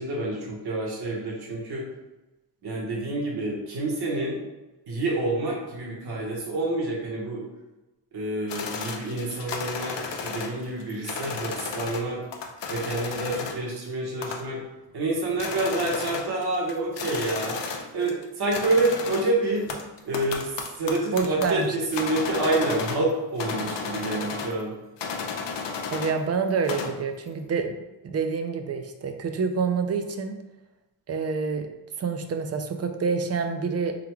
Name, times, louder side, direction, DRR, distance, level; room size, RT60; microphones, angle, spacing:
voice 1, 0.0-1.9 2.6-4.4 4.9-7.4 8.1-12.2 12.7-14.6 14.9-17.6 17.9-19.7 20.0-20.5 20.8-24.7, right 2 dB, 60° right, -4 dB, 1.2 m, -28 dB
sound 1, 8.5-12.1 12.3-13.7 14.2-14.6 15.0-15.1 15.3-18.2 18.5-23.1 23.4-24.6 25.0-26.2 26.5-27.0, left 5 dB, 75° left, 0.6 m, -33 dB
voice 2, 21.1-21.7 25.9-27.8 28.0-30.4 31.1-31.7 32.0-33.9, right 5 dB, 35° right, 6 dB, 0.4 m, -27 dB
4.5 x 3.9 x 2.2 m, 1.1 s
wide cardioid pair, 125°, 44 cm